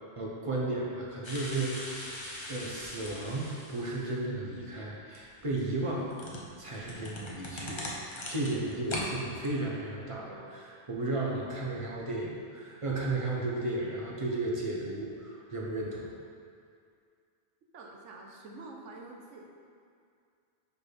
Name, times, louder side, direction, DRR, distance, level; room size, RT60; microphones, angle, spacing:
voice 1, 0.2-2.2 2.5-6.1 6.6-16.1, right 2 dB, 30° right, -3 dB, 0.8 m, -34 dB
sound 1, 1.2-4.1 5.1-9.1 9.4-9.5, left 1 dB, 30° left, 0.7 m, -40 dB
voice 2, 17.7-19.5, right 2 dB, 85° right, 0 dB, 1.1 m, -47 dB
4.7 x 4.6 x 5.0 m, 2.3 s
omnidirectional pair, 1.2 m